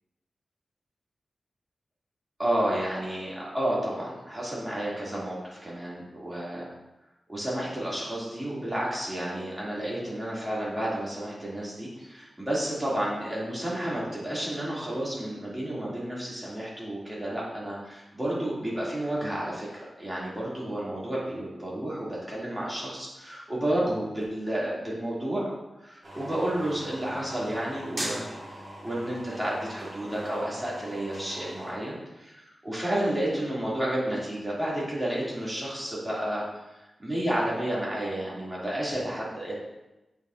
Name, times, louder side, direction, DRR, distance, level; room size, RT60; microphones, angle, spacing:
voice 1, 2.4-6.7 7.3-25.5 25.8-36.6 37.0-39.5, right 1 dB, 15° right, -7 dB, 2.5 m, -31 dB
sound 1, 26.0-31.7, right 1 dB, 35° right, 1.7 m, -40 dB
8.5 x 5.6 x 2.6 m, 0.98 s
wide cardioid pair, 100°, 0 cm